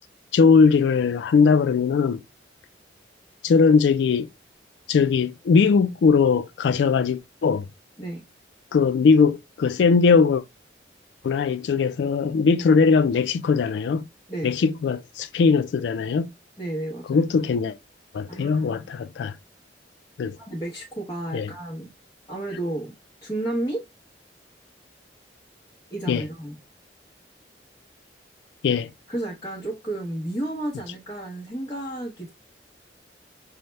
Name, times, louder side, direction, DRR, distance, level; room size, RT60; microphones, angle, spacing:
voice 1, 0.3-2.2 3.4-4.3 4.9-7.7 8.7-10.4 11.2-14.0 14.4-16.3 17.1-17.8 18.1-19.3 20.2-20.4 21.3-21.5 26.1-26.2 28.6-28.9, left 5 dB, 75° left, 0.3 m, -20 dB
voice 2, 16.6-17.3 18.3-18.9 20.4-21.9 22.3-22.9 23.2-23.8 25.9-26.5 29.1-32.3, right 1 dB, 20° left, 0.8 m, -32 dB
5.5 x 2.1 x 3.1 m
head